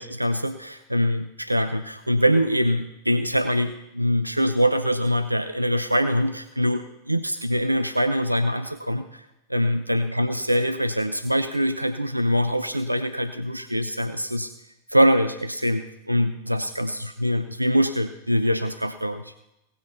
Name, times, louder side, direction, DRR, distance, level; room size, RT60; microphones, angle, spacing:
voice 1, 0.0-9.2 9.5-14.5 14.9-19.3, equal, 85° right, 9 dB, 0.6 m, -23 dB
17.5 x 6.9 x 5.6 m, 0.88 s
figure-of-eight pair, 90°, 0 cm